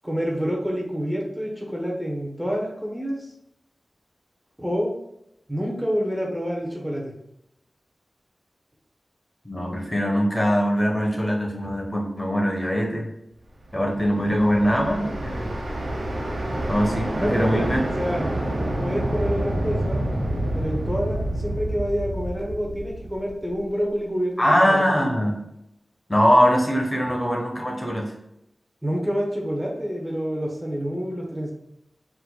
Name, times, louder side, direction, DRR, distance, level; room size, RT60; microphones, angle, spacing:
voice 1, 0.0-3.3 4.6-4.9 5.5-7.1 17.2-17.7 17.9-18.3 18.8-20.0 20.5-24.3 24.6-24.8 28.8-31.5, equal, 10° right, -1 dB, 1.0 m, -27 dB
voice 2, 9.4-13.1 13.7-15.5 16.7-17.8 24.4-25.3 26.1-28.1, equal, 20° left, 0 dB, 1.0 m, -22 dB
sound 1, 13.7-23.7, right 1 dB, 85° right, 1.1 m, -28 dB
5.4 x 4.0 x 2.2 m, 0.80 s
wide cardioid pair, 65°, 0 cm